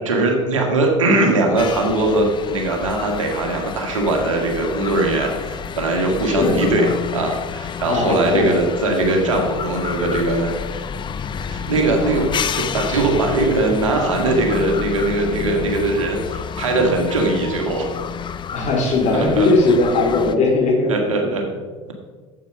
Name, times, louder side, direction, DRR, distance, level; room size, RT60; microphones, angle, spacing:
voice 1, 0.0-10.9 11.4-12.3 12.7-17.9 19.1-19.5 20.9-21.4, right 2 dB, 80° right, 2 dB, 2.0 m, -20 dB
sound 1, 1.6-20.4, left 7 dB, 30° left, 0.6 m, -29 dB
voice 2, 6.3-6.9 7.9-8.6 18.5-21.3, left 2 dB, 45° left, 1 dB, 3.4 m, -19 dB
9.2 x 8.2 x 5.5 m, 1.4 s
hypercardioid pair, 75°, 16 cm